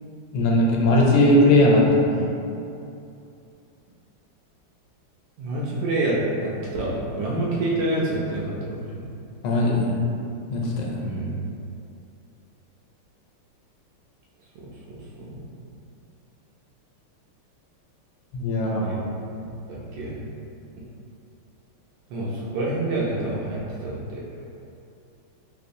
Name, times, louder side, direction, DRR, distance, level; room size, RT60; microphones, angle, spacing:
voice 1, 0.3-2.2 9.4-9.9 10.5-11.0 18.3-18.8, left 1 dB, 90° left, -2 dB, 1.5 m, -19 dB
voice 2, 5.4-9.1 11.0-11.3 14.5-15.5 18.7-19.0 19.4-20.2 22.1-24.2, right 2 dB, 75° right, -5 dB, 1.1 m, -28 dB
3.5 x 3.0 x 2.6 m, 2.7 s
omnidirectional pair, 2.4 m